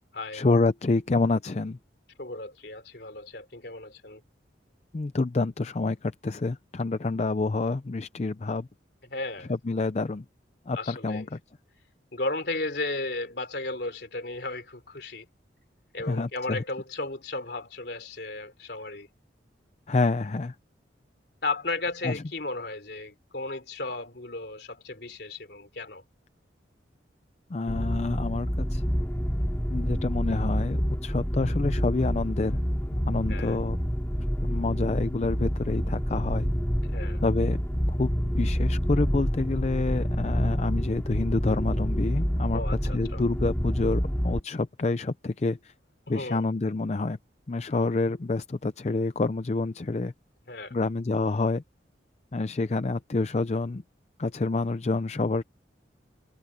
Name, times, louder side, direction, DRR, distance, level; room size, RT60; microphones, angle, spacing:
voice 1, 0.3-1.8 4.9-8.7 9.5-10.2 10.7-11.4 16.0-16.6 19.9-20.6 22.0-22.2 27.5-28.8 29.7-32.6 32.9-33.8 34.2-36.5 37.2-37.6 37.9-45.7 46.1-47.2 47.5-50.1 50.7-51.6 52.3-53.8 54.2-55.4, left 3 dB, 35° left, 0.4 m, -28 dB
voice 2, 2.2-4.2 9.1-9.5 10.7-11.3 12.1-15.3 15.9-19.1 21.4-26.0 33.3-33.6 36.9-37.2 42.5-43.2 46.1-46.4 50.5-50.7, left 2 dB, 60° left, 3.2 m, -34 dB
sound 1, 27.7-44.4, equal, 10° left, 2.4 m, -28 dB
head